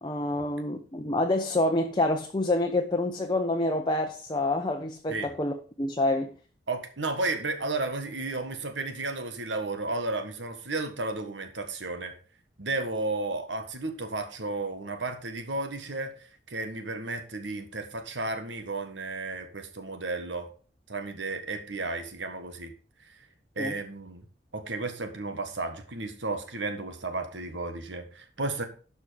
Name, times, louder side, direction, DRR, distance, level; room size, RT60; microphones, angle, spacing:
voice 1, 0.0-6.3 23.6-23.8, left 2 dB, 25° left, 0.8 m, -27 dB
voice 2, 6.7-12.1 12.6-20.5 20.9-22.7 23.0-23.2 23.5-24.2 24.5-28.6, right 3 dB, 85° right, 1.6 m, -33 dB
11.5 x 5.6 x 5.1 m
head